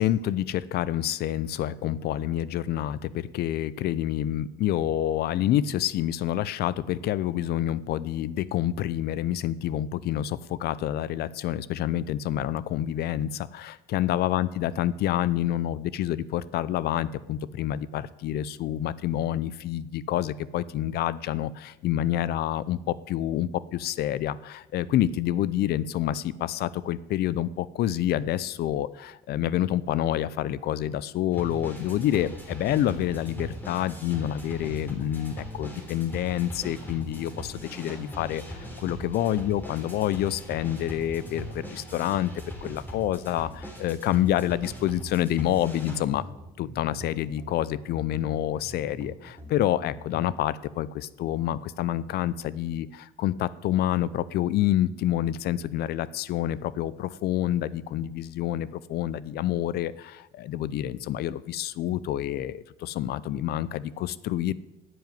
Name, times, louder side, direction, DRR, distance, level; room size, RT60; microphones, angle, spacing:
voice 1, 0.0-42.3 42.6-46.3 46.6-64.5, left 12 dB, 70° left, 19 dB, 0.6 m, -28 dB
sound 1, 31.3-50.3, equal, 10° left, 3.5 m, -40 dB
10.5 x 7.9 x 9.3 m, 0.97 s
cardioid pair, 110°, 17 cm